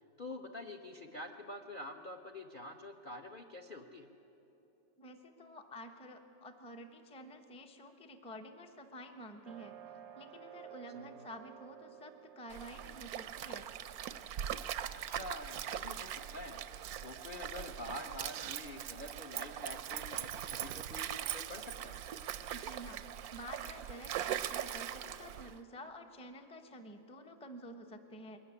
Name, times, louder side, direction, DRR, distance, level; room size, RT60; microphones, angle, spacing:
voice 1, 0.2-4.1 10.9-11.1 15.1-16.6 17.0-22.0, left 1 dB, 45° left, 5 dB, 0.6 m, -47 dB
voice 2, 5.0-9.8 10.1-13.6 22.5-23.0 23.3-28.4, equal, 5° left, 5 dB, 0.6 m, -50 dB
sound 1, 9.4-15.1, right 10 dB, 90° right, 1.5 m, -55 dB
Stream, 12.5-25.6, right 10 dB, 70° right, 0.9 m, -41 dB
21.5 x 13.5 x 9.7 m, 3.0 s
omnidirectional pair, 2.0 m